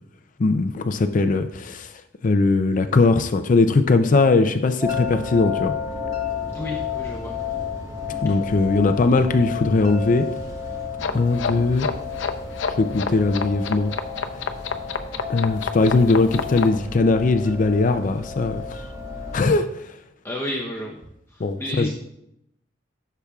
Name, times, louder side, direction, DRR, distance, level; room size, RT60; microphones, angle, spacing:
voice 1, 0.4-1.9 2.2-5.7 8.2-10.3 11.1-11.9 12.8-13.9 15.3-18.8 19.3-19.7 21.4-21.9, left 3 dB, 45° left, 9 dB, 0.5 m, -20 dB
sound 1, 4.8-19.5, left 6 dB, 20° right, 1.3 m, -32 dB
voice 2, 6.5-7.4 20.2-21.0 21.3-21.9, left 1 dB, 15° left, -3 dB, 0.8 m, -31 dB
sound 2, 11.0-16.7, left 5 dB, 85° left, 0.7 m, -29 dB
14.5 x 6.8 x 2.4 m, 0.81 s
head